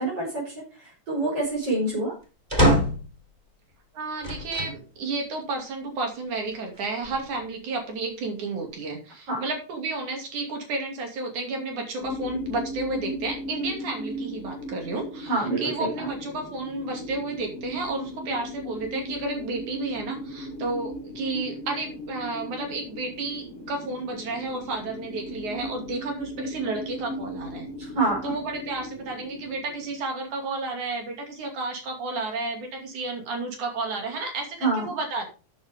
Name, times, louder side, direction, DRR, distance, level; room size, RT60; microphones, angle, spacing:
voice 1, 0.0-2.1 9.3-9.4 15.3-16.1 27.8-28.3 34.6-34.9, right 2 dB, 50° right, -5 dB, 6.1 m, -27 dB
sound 1, 2.5-3.2 4.2-4.8 5.4-5.5 6.7-7.5, equal, 15° right, 2.9 m, -24 dB
voice 2, 3.9-27.7 28.2-35.3, right 3 dB, 80° right, 3 dB, 4.1 m, -32 dB
sound 2, 12.0-30.0, left 1 dB, 55° left, 1.9 m, -37 dB
13.0 x 8.1 x 3.7 m, 0.34 s
omnidirectional pair, 3.4 m